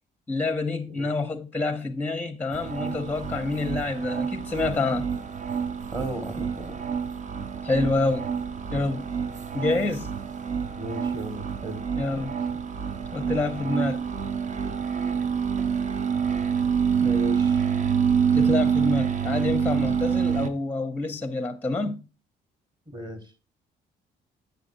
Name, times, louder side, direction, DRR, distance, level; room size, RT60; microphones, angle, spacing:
voice 1, 0.3-5.1 7.6-8.3 8.7-9.1 9.5-10.1 12.0-12.4 13.1-14.0 18.3-22.0, left 3 dB, 10° left, 0.6 m, -27 dB
sound 1, 2.5-20.5, right 7 dB, 40° right, 0.7 m, -27 dB
voice 2, 5.9-6.8 10.8-11.8 12.1-12.2 17.0-17.6 22.9-23.2, right 1 dB, 20° right, 1.4 m, -35 dB
7.9 x 6.4 x 2.5 m
cardioid pair, 95°, 19 cm